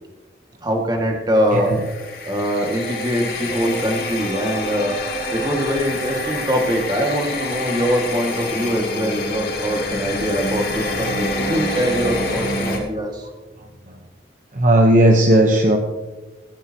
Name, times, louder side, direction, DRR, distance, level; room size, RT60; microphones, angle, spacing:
voice 1, 0.6-1.8 2.3-5.0 5.3-13.3, equal, 25° right, 2 dB, 2.0 m, -23 dB
sound 1, 1.5-12.8, left 1 dB, 55° left, 3.3 m, -26 dB
voice 2, 1.5-1.8 5.3-5.4 11.4-11.5 14.5-15.8, right 1 dB, 45° right, 2 dB, 1.0 m, -15 dB
15.5 x 14.0 x 3.0 m, 1.2 s
head